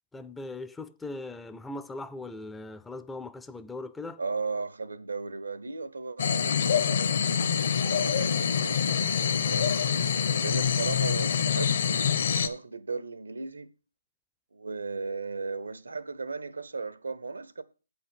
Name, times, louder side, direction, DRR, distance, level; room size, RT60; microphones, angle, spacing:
voice 1, 0.1-4.2, left 2 dB, 5° left, 0.3 m, -39 dB
voice 2, 4.2-7.6 7.9-9.8 10.4-11.7 12.4-13.7 14.5-17.6, right 4 dB, 90° right, 0.9 m, -36 dB
sound 1, 6.2-12.5, left 7 dB, 55° left, 0.8 m, -26 dB
8.1 x 5.0 x 6.4 m
hypercardioid pair, 150°, 0 cm